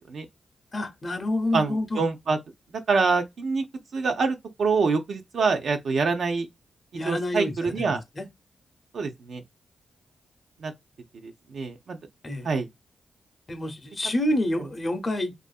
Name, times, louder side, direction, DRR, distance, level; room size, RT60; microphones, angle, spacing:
voice 1, 0.7-2.0 6.9-8.3 12.2-12.5 13.5-15.3, left 1 dB, 40° left, 0.6 m, -28 dB
voice 2, 1.5-2.4 2.9-3.6 3.9-6.5 7.0-8.0 8.9-9.4 10.6-10.7 11.2-12.0 12.4-12.7, right 4 dB, 70° right, 0.5 m, -25 dB
2.6 x 2.4 x 2.3 m
cardioid pair, 60°, 0 cm